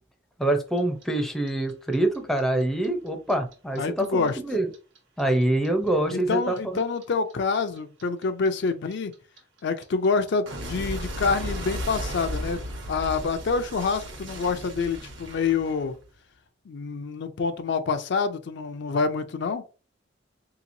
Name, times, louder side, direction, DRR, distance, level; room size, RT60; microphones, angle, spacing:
voice 1, 0.4-4.7 5.2-6.8, right 1 dB, ahead, 0.5 m, -25 dB
Clock, 0.8-3.8 4.0-7.0 7.3-16.2, equal, 70° right, 0.9 m, -35 dB
voice 2, 3.8-4.4 6.1-9.1 9.6-12.6 12.9-15.9 16.7-19.6, left 4 dB, 60° left, 0.4 m, -27 dB
3.7 x 2.9 x 2.6 m
head